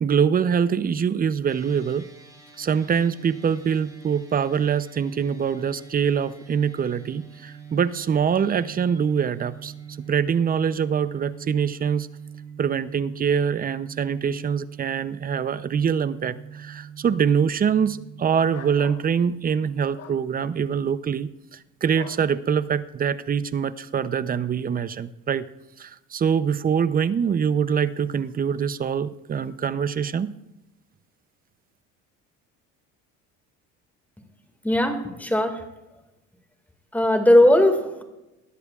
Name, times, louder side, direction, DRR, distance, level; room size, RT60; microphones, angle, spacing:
voice 1, 0.0-2.1 2.6-9.7 10.0-12.1 12.6-25.5 25.8-30.3, right 7 dB, 25° right, 15 dB, 0.6 m, -24 dB
sound 1, 1.5-18.9, right 7 dB, 10° right, 4.0 m, -43 dB
sound 2, 18.5-19.0 19.9-20.2 21.9-22.2, left 6 dB, 50° left, 1.4 m, -41 dB
voice 2, 34.6-35.6 36.9-38.0, left 1 dB, 5° left, 5 dB, 2.0 m, -18 dB
19.5 x 13.0 x 2.4 m, 0.94 s
cardioid pair, 110°, 32 cm